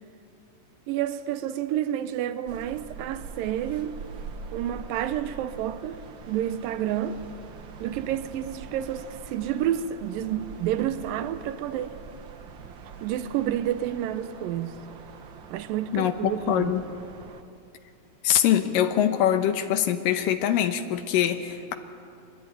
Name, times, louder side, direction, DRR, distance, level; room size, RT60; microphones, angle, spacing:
voice 1, 0.9-4.0 4.5-6.0 6.3-7.2 7.8-12.0 13.0-14.8 15.5-16.7, right 11 dB, 90° right, 2.6 m, -29 dB
sound 1, 2.5-17.4, right 5 dB, 70° right, 1.1 m, -44 dB
voice 2, 15.9-16.8 18.2-21.7, left 10 dB, 85° left, 2.7 m, -23 dB
25.5 x 21.5 x 9.1 m
omnidirectional pair, 3.9 m